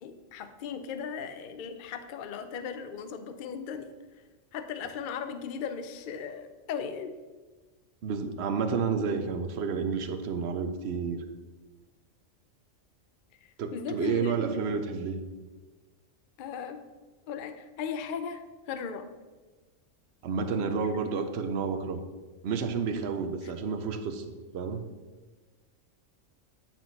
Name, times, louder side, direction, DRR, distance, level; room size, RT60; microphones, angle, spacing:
voice 1, 0.0-3.9 4.5-7.1 13.7-14.7 16.4-16.8 17.3-18.4 18.7-19.1 20.6-21.0 23.4-23.5, left 7 dB, 55° left, 9 dB, 0.6 m, -37 dB
voice 2, 8.0-11.2 13.6-15.2 20.2-22.0 22.4-24.2 24.5-24.8, right 5 dB, 60° right, 8 dB, 0.8 m, -30 dB
8.9 x 4.5 x 4.0 m, 1.3 s
omnidirectional pair, 1.3 m